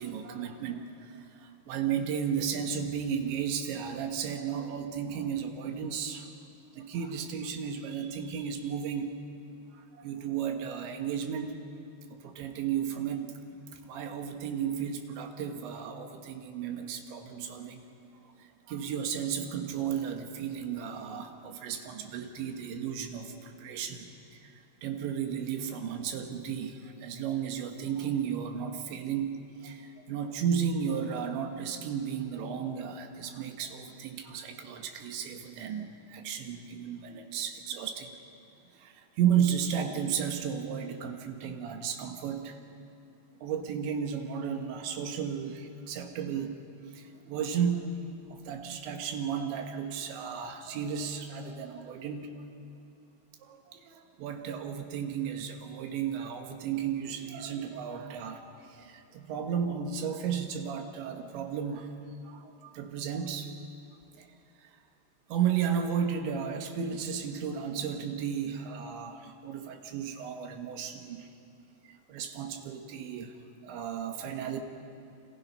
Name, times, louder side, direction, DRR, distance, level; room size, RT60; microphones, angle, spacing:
voice 1, 0.0-6.3 6.7-9.2 9.7-11.6 12.1-13.4 13.8-17.8 18.4-24.1 24.4-38.1 38.8-42.6 43.4-46.6 46.9-47.9 48.3-52.5 53.4-61.9 62.2-63.5 64.2-64.3 65.3-71.3 71.9-73.3 73.6-74.6, right 8 dB, 80° right, 5 dB, 3.8 m, -34 dB
29.0 x 25.5 x 5.6 m, 2.6 s
omnidirectional pair, 5.1 m